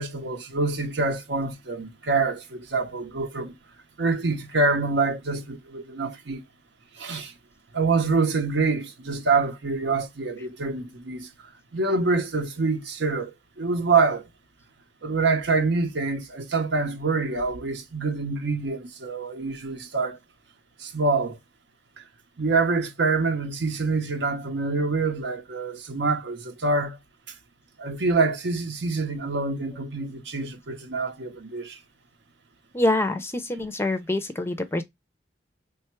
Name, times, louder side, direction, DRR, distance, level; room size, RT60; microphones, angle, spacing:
voice 1, 0.0-3.5 4.0-6.4 7.0-7.3 7.7-11.3 11.7-13.3 13.6-14.2 15.0-20.2 20.8-21.4 22.4-27.0 27.8-31.8, right 3 dB, 70° right, 0.8 m, -26 dB
voice 2, 32.7-34.8, left 2 dB, 15° left, 0.5 m, -25 dB
3.4 x 2.2 x 4.4 m
head